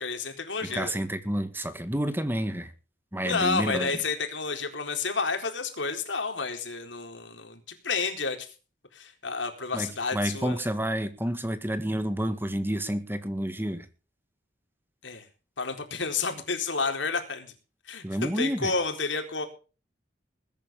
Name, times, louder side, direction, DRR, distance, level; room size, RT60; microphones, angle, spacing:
voice 1, 0.0-0.9 3.2-8.5 8.9-10.6 15.0-15.2 15.6-17.5 17.9-19.5, left 4 dB, 90° left, 4.1 m, -30 dB
voice 2, 0.6-2.7 3.1-4.0 9.7-13.9 18.0-18.7, right 1 dB, 10° right, 1.7 m, -29 dB
21.5 x 10.5 x 3.6 m
head